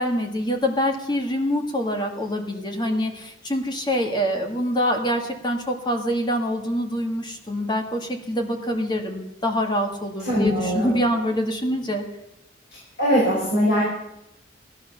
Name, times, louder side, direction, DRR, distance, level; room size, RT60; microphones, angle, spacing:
voice 1, 0.0-12.0, equal, 25° left, 3 dB, 2.0 m, -25 dB
voice 2, 10.2-11.0 13.0-13.8, equal, 60° left, -5 dB, 6.2 m, -21 dB
16.5 x 11.5 x 7.0 m, 0.87 s
head